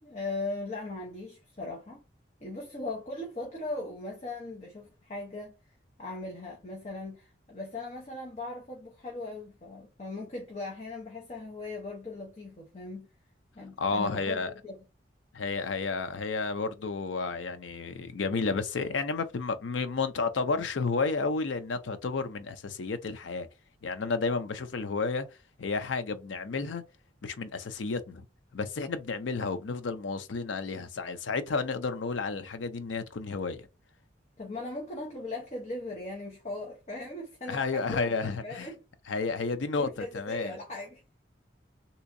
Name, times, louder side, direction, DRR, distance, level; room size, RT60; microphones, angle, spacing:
voice 1, 0.0-2.0 2.4-5.6 6.0-13.1 13.5-14.8 34.4-38.8 39.7-41.0, left 2 dB, 35° left, 0.7 m, -39 dB
voice 2, 13.8-14.5 15.3-23.5 23.8-25.3 25.6-26.8 27.2-28.2 28.5-33.6 37.5-38.7 39.1-40.5, left 4 dB, 80° left, 0.5 m, -31 dB
3.4 x 2.8 x 2.6 m
head